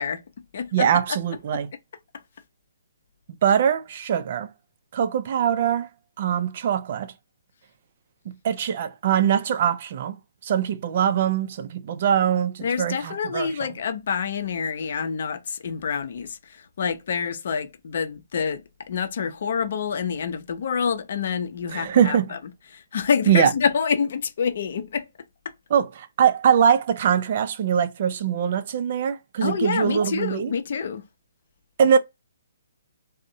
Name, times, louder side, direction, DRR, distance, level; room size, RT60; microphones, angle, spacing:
voice 1, 0.0-0.9 1.5-1.6 12.6-22.4 22.7-25.1 29.4-31.1, left 6 dB, 60° left, 0.5 m, -27 dB
voice 2, 0.7-1.7 3.4-4.5 4.9-5.9 6.2-7.1 8.3-10.2 10.4-13.5 21.7-22.3 23.3-23.5 25.7-30.5 31.8-32.0, right 8 dB, 45° right, 0.3 m, -22 dB
2.5 x 2.0 x 2.6 m
hypercardioid pair, 150°, 0 cm